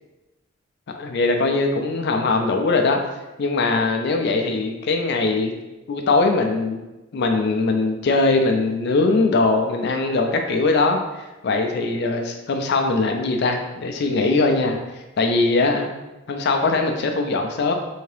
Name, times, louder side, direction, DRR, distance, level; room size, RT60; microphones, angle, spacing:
voice 1, 1.0-3.0 3.4-5.5 5.9-6.8 7.1-15.9 16.3-17.7, left 3 dB, 55° left, 4 dB, 0.4 m, -21 dB
3.5 x 2.7 x 3.2 m, 1.0 s
head